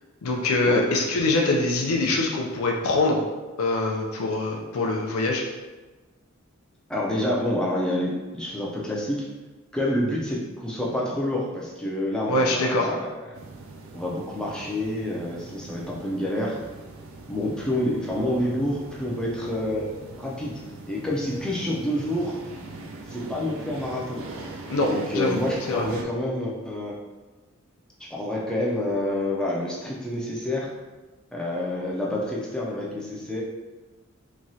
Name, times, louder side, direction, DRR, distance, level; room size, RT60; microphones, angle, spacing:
voice 1, 0.2-3.2 3.6-5.4 12.3-12.9 24.7-25.4 25.7-25.8, left 2 dB, 80° left, -1 dB, 0.4 m, -24 dB
voice 2, 6.9-9.3 9.7-13.4 13.9-16.6 17.3-19.9 20.2-22.4 23.1-24.3 24.9-27.0 28.0-30.7 31.3-33.4, left 1 dB, 5° left, -4 dB, 0.4 m, -28 dB
sound 1, 13.3-26.0, right 3 dB, 65° right, 0.4 m, -41 dB
3.0 x 2.3 x 2.6 m, 1.2 s
head